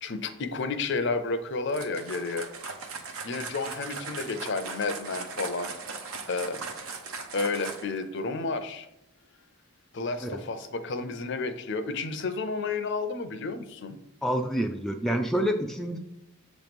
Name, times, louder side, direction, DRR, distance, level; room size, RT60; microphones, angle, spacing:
voice 1, 0.0-2.5 3.2-5.7 6.3-6.6 7.3-8.9 9.9-13.9, left 3 dB, 50° left, 9 dB, 0.6 m, -31 dB
sound 1, 1.7-8.0, right 4 dB, 70° right, 0.9 m, -39 dB
voice 2, 14.2-16.0, equal, ahead, 2 dB, 0.3 m, -28 dB
7.8 x 3.1 x 5.2 m, 0.84 s
head